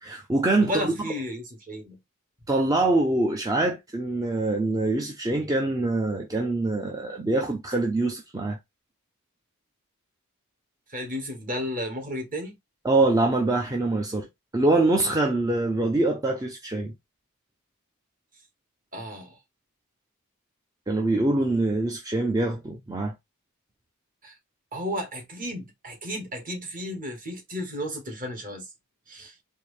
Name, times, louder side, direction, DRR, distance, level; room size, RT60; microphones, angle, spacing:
voice 1, 0.0-0.9 2.5-8.6 12.8-14.3 14.5-16.9 20.9-23.1, right 2 dB, 15° right, 0.6 m, -24 dB
voice 2, 0.6-2.0 10.9-12.5 18.9-19.4 24.2-24.3 24.7-28.6 29.1-29.3, equal, 40° right, 1.7 m, -33 dB
4.5 x 2.7 x 3.2 m
head